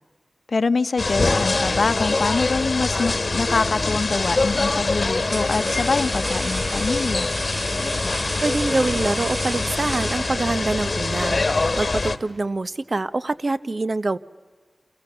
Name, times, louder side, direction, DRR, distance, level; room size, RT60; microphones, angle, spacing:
voice 1, 0.5-7.3, left 4 dB, 70° left, 13 dB, 0.8 m, -24 dB
sound 1, 1.0-12.2, left 3 dB, 50° left, 1.4 m, -24 dB
sound 2, 5.2-10.7, right 1 dB, 25° right, 2.1 m, -34 dB
voice 2, 8.4-11.4 11.8-14.2, right 2 dB, 50° right, 15 dB, 0.8 m, -25 dB
29.0 x 27.5 x 6.8 m, 1.3 s
cardioid pair, 50°, 0 cm